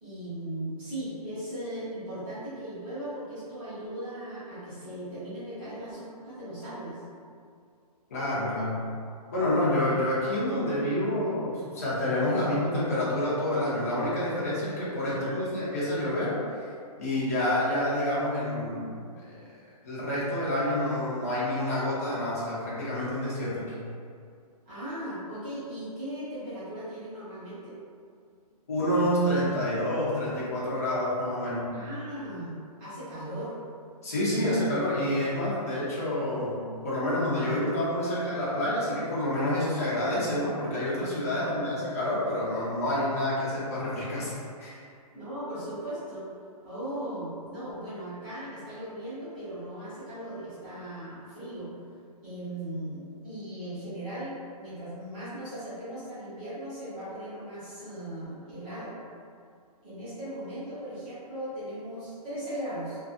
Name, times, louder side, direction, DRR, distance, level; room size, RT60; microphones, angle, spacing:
voice 1, 0.0-7.0 15.1-15.4 24.6-27.7 31.7-32.5 32.8-33.5 41.3-41.6 45.1-46.2 46.6-51.7 52.2-58.9 59.8-63.0, right 1 dB, 15° right, -15 dB, 0.8 m, -38 dB
voice 2, 8.1-8.8 9.3-16.3 17.0-18.9 19.2-19.4 19.8-23.8 28.7-31.7 34.0-44.8, left 1 dB, 25° left, -9 dB, 0.5 m, -28 dB
2.5 x 2.4 x 2.4 m, 2.3 s
hypercardioid pair, 180°, 20 cm